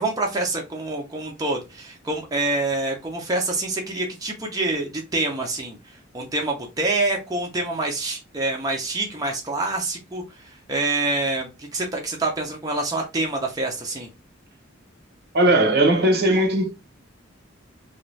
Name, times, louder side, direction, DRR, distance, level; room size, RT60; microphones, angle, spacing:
voice 1, 0.0-5.8 6.1-14.1, right 2 dB, 20° right, 0.6 m, -26 dB
voice 2, 15.3-16.7, right 1 dB, 55° right, 0.8 m, -18 dB
2.5 x 2.3 x 3.1 m
head